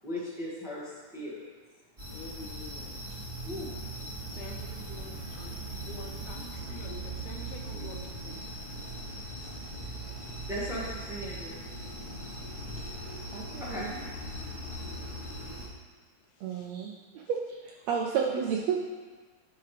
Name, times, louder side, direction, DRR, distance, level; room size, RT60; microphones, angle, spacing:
voice 1, 0.0-1.5 3.4-3.7 10.5-11.6 13.6-13.9, left 1 dB, ahead, -8 dB, 0.8 m, -37 dB
sound 1, 2.0-15.7, right 1 dB, 35° right, 0.4 m, -40 dB
voice 2, 2.1-3.1 4.3-8.4 16.3-16.7, left 5 dB, 80° left, 0 dB, 2.2 m, -47 dB
voice 3, 13.3-14.0 16.4-18.8, right 7 dB, 85° right, 0 dB, 1.5 m, -32 dB
10.0 x 5.8 x 3.3 m, 1.4 s
omnidirectional pair, 3.7 m